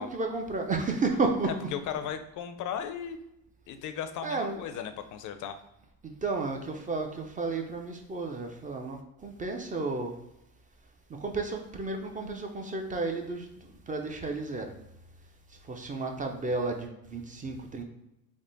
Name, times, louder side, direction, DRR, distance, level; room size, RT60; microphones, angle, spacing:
voice 1, 0.0-1.7 4.2-4.6 6.0-9.0 9.2-10.1 11.2-14.7 15.7-17.8, right 3 dB, 20° right, 3 dB, 0.4 m, -32 dB
voice 2, 1.4-3.2 3.7-5.6, left 8 dB, 45° left, 8 dB, 0.5 m, -36 dB
3.6 x 2.1 x 3.8 m, 0.85 s
supercardioid pair, 95°, 45 cm